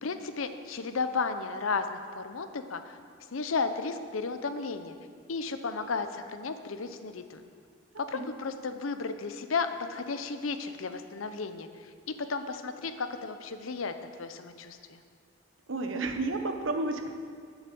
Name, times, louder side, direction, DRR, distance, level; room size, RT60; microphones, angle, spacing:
voice 1, 0.0-3.0 3.3-4.9 5.3-7.4 8.0-15.0, left 4 dB, 90° left, 9 dB, 0.7 m, -34 dB
voice 2, 15.7-17.1, right 2 dB, 80° right, 5 dB, 1.1 m, -31 dB
11.0 x 7.2 x 7.0 m, 2.1 s
head